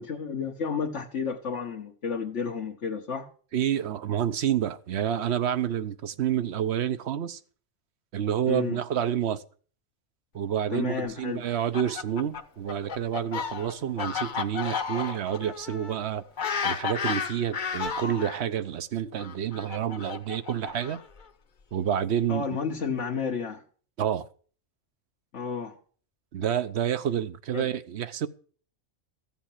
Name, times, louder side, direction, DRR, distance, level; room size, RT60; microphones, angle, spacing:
voice 1, 0.0-3.3 8.5-8.8 10.7-11.4 22.3-23.6 25.3-25.8 27.5-27.7, left 6 dB, 85° left, 1.6 m, -31 dB
voice 2, 3.5-7.4 8.1-9.4 10.3-16.2 16.6-21.0 21.7-22.6 24.0-24.3 26.3-28.3, right 9 dB, 70° right, 1.0 m, -29 dB
Fowl, 11.5-18.4 19.2-21.2, left 6 dB, 45° left, 1.0 m, -33 dB
14.5 x 7.4 x 7.4 m
omnidirectional pair, 1.2 m